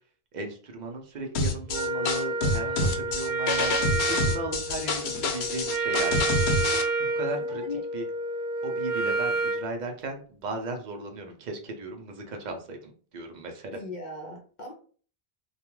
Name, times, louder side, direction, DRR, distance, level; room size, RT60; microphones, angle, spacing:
voice 1, 0.3-6.3 7.0-7.6 7.9-8.0 8.6-13.8, right 2 dB, 55° right, 3 dB, 0.6 m, -36 dB
sound 1, 1.3-6.8, left 2 dB, 80° left, 0.8 m, -27 dB
Wind instrument woodwind instrument, 1.7-9.7, right 3 dB, 85° right, 0.9 m, -29 dB
voice 2, 7.4-7.9 13.7-14.7, left 2 dB, 55° left, 1 dB, 0.6 m, -38 dB
2.3 x 2.2 x 3.0 m, 0.42 s
omnidirectional pair, 1.1 m